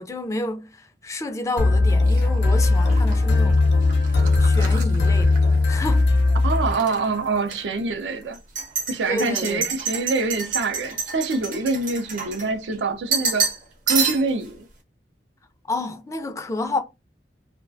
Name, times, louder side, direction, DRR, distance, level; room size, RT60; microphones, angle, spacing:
voice 1, 0.0-3.6 4.1-5.4 5.7-6.1 9.1-9.7 15.7-16.8, left 2 dB, 15° left, 0.3 m, -30 dB
sound 1, 1.6-7.2, left 3 dB, 70° left, 0.5 m, -19 dB
sound 2, 2.1-6.0 6.3-7.0 7.5-7.6 8.3-12.7 13.1-13.6 13.9-14.5, right 5 dB, 45° right, 0.7 m, -29 dB
voice 2, 6.4-8.4 8.9-13.5 13.9-14.6, right 3 dB, 80° right, 0.5 m, -25 dB
2.3 x 2.1 x 2.5 m
head